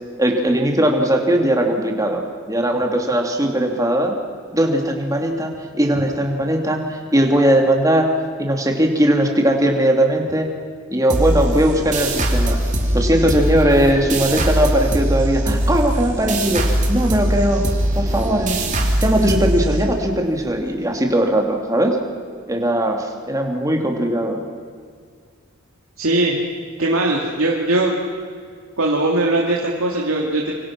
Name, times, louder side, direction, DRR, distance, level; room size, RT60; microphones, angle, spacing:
voice 1, 0.2-4.2 4.5-8.1 8.4-10.5 10.9-12.6 12.9-17.6 18.0-18.7 19.0-22.0 22.5-24.4, right 1 dB, 15° right, 2 dB, 2.7 m, -19 dB
sound 1, 11.1-20.3, right 1 dB, 35° right, 3.2 m, -21 dB
voice 2, 26.0-26.4 26.8-28.0 28.8-30.5, right 2 dB, 75° right, -2 dB, 2.7 m, -20 dB
26.5 x 25.0 x 6.1 m, 2.1 s
head